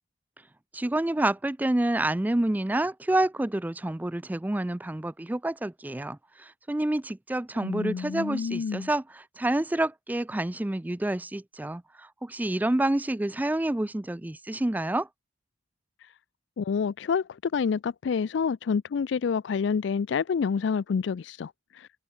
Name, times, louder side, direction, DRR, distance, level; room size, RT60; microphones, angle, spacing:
voice 1, 0.7-15.1, right 1 dB, 10° right, 0.3 m, -28 dB
voice 2, 7.6-8.9 16.0-16.1 16.6-22.0, left 6 dB, 65° left, 0.4 m, -28 dB
open air
head